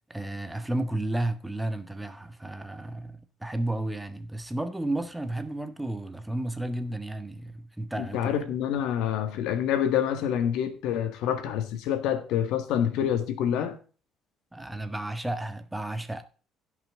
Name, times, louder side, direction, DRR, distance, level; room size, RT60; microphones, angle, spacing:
voice 1, 0.1-8.3 14.5-16.3, right 1 dB, 10° right, 1.5 m, -32 dB
voice 2, 8.0-13.8, left 9 dB, 80° left, 1.7 m, -27 dB
16.5 x 6.0 x 3.8 m
supercardioid pair, 85°, 0 cm